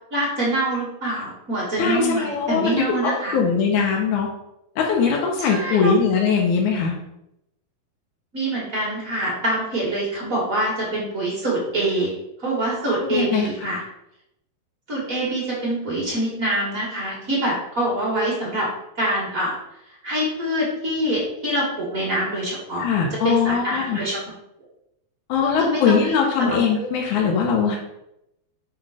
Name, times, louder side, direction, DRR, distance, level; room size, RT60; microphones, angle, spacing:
voice 1, 0.1-3.4 5.4-5.9 8.3-13.8 14.9-18.7 18.9-19.6 20.0-22.8 23.2-24.2 25.4-26.6, right 1 dB, 45° right, -6 dB, 1.1 m, -25 dB
voice 2, 1.8-4.3 4.8-7.0 12.9-13.5 22.8-24.0 25.3-27.8, left 6 dB, 70° left, -1 dB, 2.1 m, -21 dB
5.9 x 3.8 x 4.8 m, 0.83 s
omnidirectional pair, 4.1 m